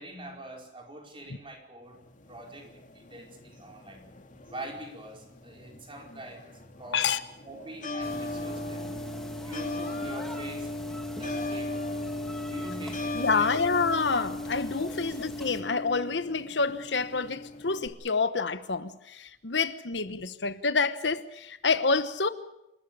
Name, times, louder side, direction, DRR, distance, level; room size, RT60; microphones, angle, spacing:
voice 1, 0.0-2.0 2.3-4.1 4.5-7.1 7.4-9.0 9.4-10.8 11.2-11.8 12.4-13.6 14.8-15.1, right 1 dB, 30° right, 4.7 m, -44 dB
sound 1, 1.9-17.9, left 2 dB, 45° left, 2.5 m, -38 dB
sound 2, 8.0-15.6, equal, 5° left, 2.3 m, -42 dB
voice 2, 13.1-22.3, left 4 dB, 80° left, 1.1 m, -28 dB
27.5 x 13.5 x 8.8 m
head